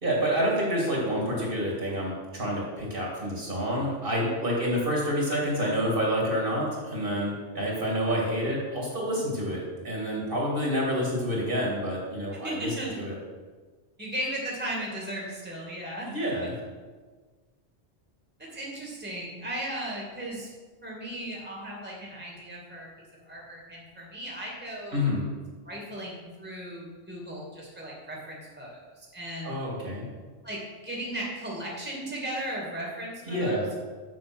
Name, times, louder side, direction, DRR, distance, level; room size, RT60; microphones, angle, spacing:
voice 1, 0.0-12.7 13.0-13.1 16.1-16.5 24.9-25.2 29.4-30.0 33.3-33.7, equal, 50° right, -3 dB, 2.8 m, -28 dB
voice 2, 12.3-13.0 14.0-16.1 16.4-16.5 18.4-20.5 20.8-25.0 25.6-29.5 30.4-33.8, right 1 dB, 10° right, -3 dB, 2.2 m, -36 dB
7.6 x 7.5 x 6.1 m, 1.4 s
omnidirectional pair, 1.2 m